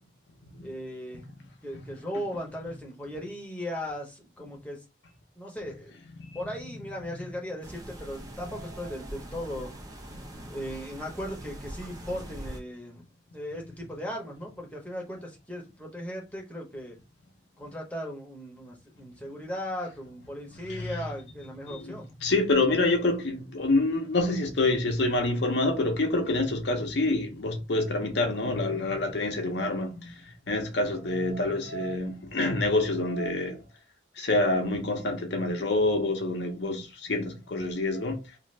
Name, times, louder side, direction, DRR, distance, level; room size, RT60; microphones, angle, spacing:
voice 1, 0.6-1.3 1.6-4.8 5.4-6.0 6.3-9.7 10.5-13.0 13.3-17.0 17.6-22.1, equal, 5° left, 0.8 m, -37 dB
voice 2, 6.2-6.5 7.0-7.2 8.4-9.0 9.4-9.5 10.1-10.2 20.6-21.1 21.7-33.7 34.2-38.4, left 2 dB, 65° left, 0.6 m, -27 dB
sound 1, 7.6-12.6, right 1 dB, 20° right, 0.5 m, -42 dB
2.5 x 2.4 x 3.1 m
head